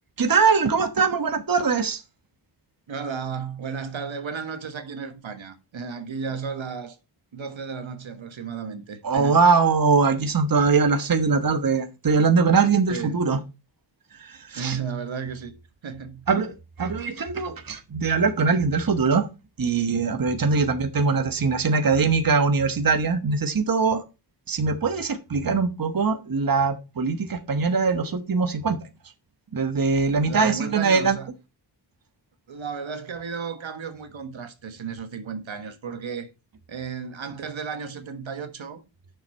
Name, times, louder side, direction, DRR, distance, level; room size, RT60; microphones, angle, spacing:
voice 1, 0.2-2.0 9.0-13.4 14.2-14.8 16.3-16.5 16.8-19.3 19.6-24.0 24.5-28.8 29.5-31.2, right 4 dB, 45° right, 1.2 m, -22 dB
voice 2, 2.9-7.0 7.3-9.4 12.9-13.3 14.5-15.6 15.8-16.3 30.2-31.3 32.5-36.3 36.7-38.8, right 6 dB, 75° right, 1.4 m, -34 dB
9.2 x 6.8 x 4.4 m
cardioid pair, 60°, 47 cm